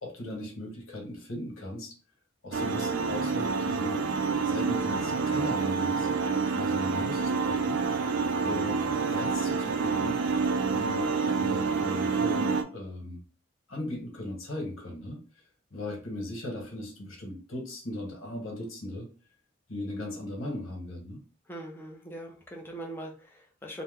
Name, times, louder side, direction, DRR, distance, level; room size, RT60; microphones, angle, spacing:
voice 1, 0.0-1.9 2.4-4.0 4.4-6.1 6.5-7.8 8.4-10.2 10.7-13.2 13.7-15.2 15.7-19.1 19.7-21.2, left 1 dB, 80° left, 0 dB, 1.2 m, -37 dB
sound 1, 2.5-12.6, right 5 dB, 65° right, 0.4 m, -28 dB
voice 2, 21.5-23.8, right 1 dB, 10° left, 0 dB, 0.5 m, -41 dB
2.9 x 2.1 x 3.5 m, 0.37 s
head